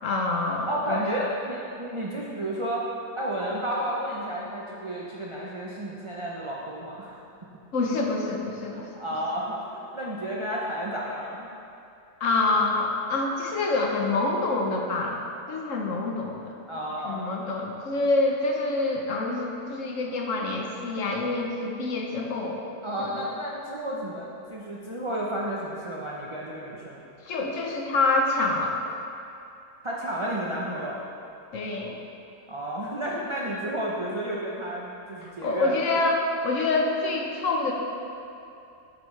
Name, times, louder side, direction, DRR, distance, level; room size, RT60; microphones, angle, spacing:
voice 1, 0.0-1.0 7.7-8.9 12.2-15.2 15.5-16.5 17.0-22.6 23.0-23.1 27.3-28.8 31.5-32.0 35.2-37.7, left 3 dB, 60° left, 0 dB, 1.1 m, -26 dB
voice 2, 0.7-2.8 3.2-7.2 8.7-11.5 16.7-17.2 22.8-27.0 29.8-31.0 32.5-35.8, right 1 dB, 50° right, -5 dB, 0.3 m, -32 dB
8.1 x 7.7 x 3.2 m, 2.7 s
omnidirectional pair, 1.7 m